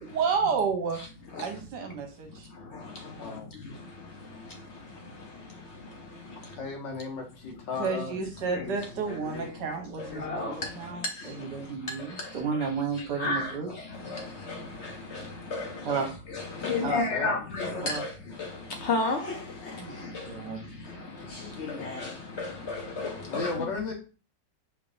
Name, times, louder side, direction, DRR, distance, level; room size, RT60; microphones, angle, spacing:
voice 1, 0.0-1.0 1.4-2.5 7.8-13.7 15.8-16.1 16.8-17.0 17.8-18.0 19.8-20.6, right 5 dB, 75° right, 1.5 m, -31 dB
voice 2, 6.4-8.2 16.6-17.4 23.3-23.9, left 4 dB, 85° left, 2.0 m, -35 dB
voice 3, 10.1-10.5 13.2-13.5 14.1-14.2 14.5-14.6 15.1-15.2 15.5-16.1 16.3-18.1 18.4-18.5 18.8-19.4 21.7-22.1 22.4-23.5, left 3 dB, 65° left, 0.7 m, -31 dB
5.3 x 3.3 x 2.5 m
omnidirectional pair, 1.9 m